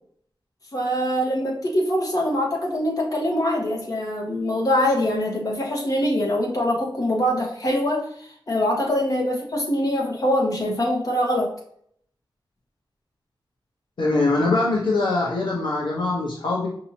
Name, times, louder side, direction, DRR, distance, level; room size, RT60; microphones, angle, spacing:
voice 1, 0.7-11.5, left 1 dB, 45° left, -1 dB, 1.3 m, -23 dB
voice 2, 14.0-16.7, left 3 dB, 75° left, -3 dB, 1.0 m, -22 dB
5.4 x 2.9 x 2.8 m, 0.64 s
wide cardioid pair, 115°, 8 cm